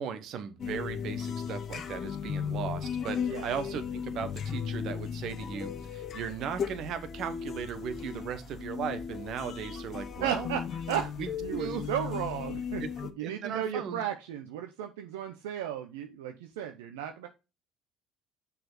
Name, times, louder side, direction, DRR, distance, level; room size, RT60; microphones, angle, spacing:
voice 1, 0.0-10.5 11.2-11.8 12.8-14.0, right 7 dB, 60° right, 10 dB, 1.1 m, -37 dB
sound 1, 0.6-13.1, left 7 dB, 50° left, 0.9 m, -36 dB
voice 2, 10.2-10.6 10.9-11.1 11.4-12.8 13.2-17.3, right 9 dB, 85° right, 6 dB, 0.6 m, -34 dB
6.5 x 4.2 x 4.0 m, 0.28 s
hypercardioid pair, 65°, 0 cm